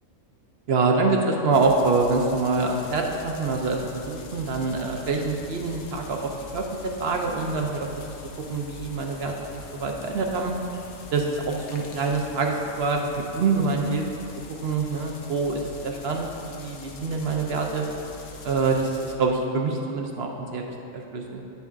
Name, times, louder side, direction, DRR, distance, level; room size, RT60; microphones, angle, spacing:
voice 1, 0.7-8.0 8.5-10.5 11.1-14.0 14.6-17.9 18.4-21.4, right 3 dB, 60° right, 2 dB, 0.8 m, -25 dB
sound 1, 1.5-19.2, left 4 dB, 85° left, 1.1 m, -43 dB
9.1 x 6.9 x 2.4 m, 2.7 s
omnidirectional pair, 1.3 m